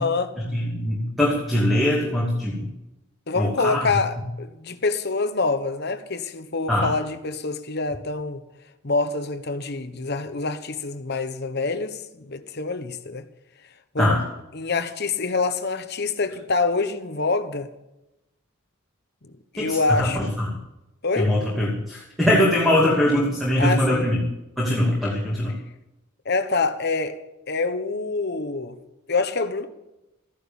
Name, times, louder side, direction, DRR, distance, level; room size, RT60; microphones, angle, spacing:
voice 1, 0.0-0.4 3.3-8.4 8.8-13.2 13.9-14.2 14.5-17.7 19.5-20.3 21.0-21.3 23.6-24.1 26.2-27.1 27.5-28.7 29.1-29.7, left 3 dB, 50° left, 1.2 m, -26 dB
voice 2, 0.5-2.7 3.3-3.8 6.7-6.9 14.0-14.2 19.6-20.1 20.4-20.5 21.2-24.2 24.6-25.5, left 1 dB, ahead, 2.7 m, -22 dB
14.5 x 11.0 x 7.2 m
head